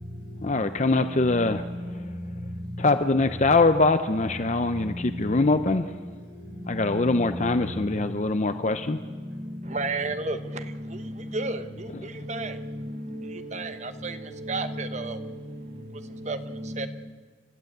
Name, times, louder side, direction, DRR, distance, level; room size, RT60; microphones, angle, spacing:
voice 1, 0.4-1.6 2.8-5.9 6.7-9.0, left 3 dB, 40° left, 9 dB, 0.6 m, -23 dB
voice 2, 9.6-12.6 13.3-15.2 16.2-16.4 16.8-16.9, right 3 dB, 35° right, 10 dB, 1.0 m, -33 dB
voice 3, 10.7-11.5 12.3-13.7 14.0-15.3 16.1-16.9, equal, 70° right, 1 dB, 5.8 m, -37 dB
30.0 x 13.5 x 8.0 m, 1.5 s
head